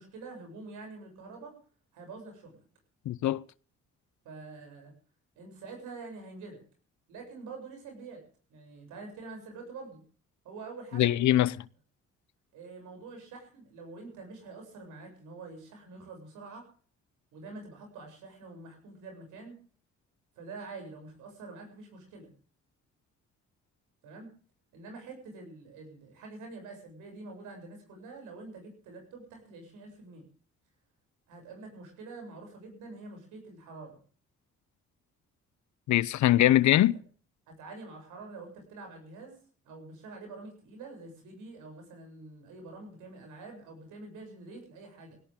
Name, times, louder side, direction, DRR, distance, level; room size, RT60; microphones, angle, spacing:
voice 1, 0.0-1.5 1.9-2.6 4.2-4.9 5.4-6.6 7.1-8.2 8.5-10.0 10.4-11.2 12.5-16.7 17.3-19.6 20.4-22.3 24.0-24.3 24.7-30.3 31.3-34.0 36.8-36.9 37.5-39.4 39.6-45.2, right 3 dB, 90° right, 7.6 m, -46 dB
voice 2, 3.1-3.4 10.9-11.5 35.9-37.0, left 14 dB, 70° left, 0.8 m, -22 dB
17.5 x 17.5 x 3.7 m
cardioid pair, 70°, 30 cm